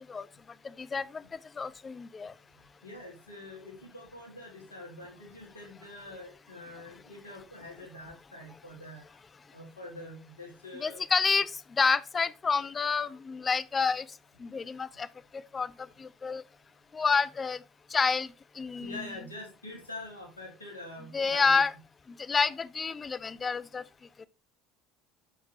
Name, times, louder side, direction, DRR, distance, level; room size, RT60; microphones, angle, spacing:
voice 1, 0.8-1.2 1.6-2.3 10.7-11.5 11.8-14.0 14.4-15.1 15.3-15.7 16.0-16.4 16.9-17.6 17.9-18.3 18.6-19.0 21.1-21.7 22.3-23.8, left 5 dB, 25° left, 0.4 m, -28 dB
voice 2, 2.8-9.0 9.5-11.0 18.8-21.6, left 2 dB, 85° left, 2.1 m, -45 dB
6.2 x 5.8 x 2.9 m
figure-of-eight pair, 65°, 0 cm